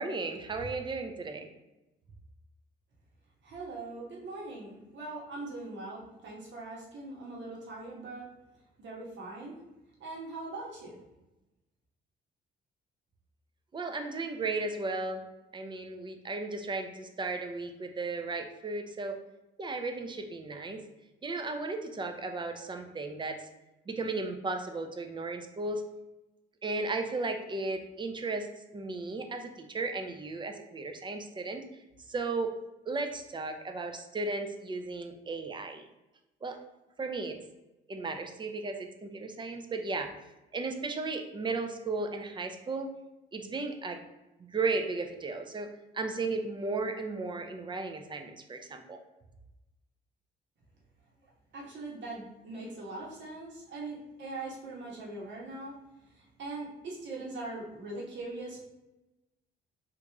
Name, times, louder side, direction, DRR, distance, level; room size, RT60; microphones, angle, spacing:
voice 1, 0.0-1.5 13.7-15.2 15.5-19.2 19.6-20.8 21.2-23.5 23.9-25.8 26.6-31.6 32.1-32.5 32.8-35.9 36.4-36.6 37.0-37.4 37.9-40.1 40.5-42.9 43.3-44.0 44.5-45.7 45.9-49.0, right 3 dB, 25° right, 5 dB, 0.4 m, -35 dB
voice 2, 3.4-8.3 8.8-9.6 10.0-11.0 51.5-55.7 56.1-58.6, right 2 dB, 65° right, -3 dB, 1.1 m, -41 dB
3.0 x 2.5 x 3.4 m, 1.0 s
cardioid pair, 90°, 20 cm